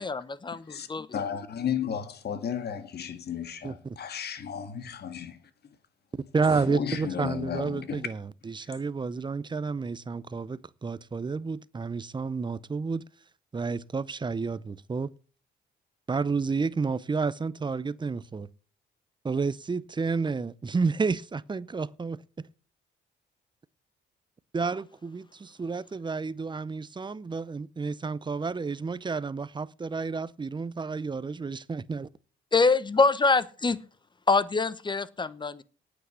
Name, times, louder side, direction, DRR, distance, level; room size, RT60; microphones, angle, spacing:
voice 1, 0.0-1.2 32.5-33.8 34.3-35.6, left 4 dB, 25° left, 0.9 m, -25 dB
voice 2, 1.1-5.4 6.7-8.1, left 8 dB, 55° left, 1.7 m, -33 dB
voice 3, 3.6-4.0 6.3-13.0 13.5-15.1 16.1-18.5 19.2-22.2 24.5-32.1, right 4 dB, 25° right, 0.7 m, -30 dB
9.3 x 8.3 x 8.1 m
cardioid pair, 90°, 20 cm